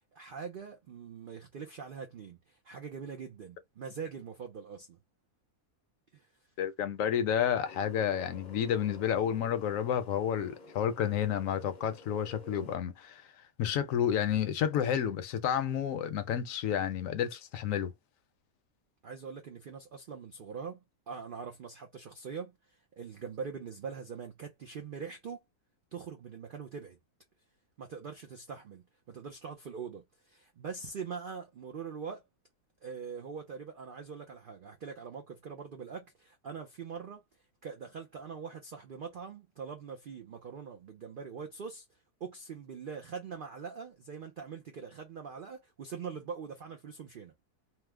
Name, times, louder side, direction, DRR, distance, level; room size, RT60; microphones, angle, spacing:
voice 1, 0.0-5.0 6.1-6.3 19.0-25.4 25.9-27.0 27.8-32.2 32.8-37.2 37.6-47.3, right 6 dB, 80° right, 0.4 m, -43 dB
voice 2, 6.6-13.2 13.6-17.9, left 9 dB, 70° left, 0.9 m, -30 dB
sound 1, 7.6-12.8, left 3 dB, 50° left, 0.6 m, -52 dB
3.0 x 2.0 x 3.3 m
omnidirectional pair, 1.5 m